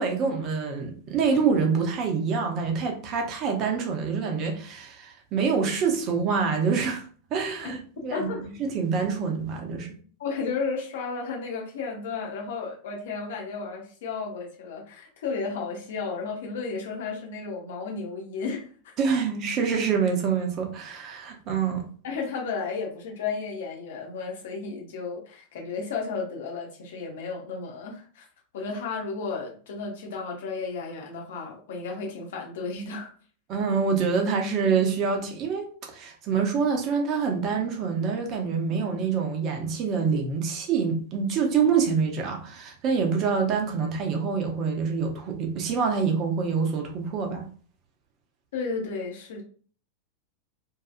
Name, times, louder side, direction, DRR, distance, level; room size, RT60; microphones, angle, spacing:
voice 1, 0.0-7.0 7.3-8.3 8.6-9.9 19.0-21.8 33.5-47.5, right 5 dB, 35° right, 0.7 m, -26 dB
voice 2, 8.1-8.5 10.2-18.9 22.0-28.2 28.5-33.1 48.5-49.4, left 4 dB, 55° left, 0.8 m, -33 dB
2.7 x 2.4 x 2.4 m
figure-of-eight pair, 90°, 0 cm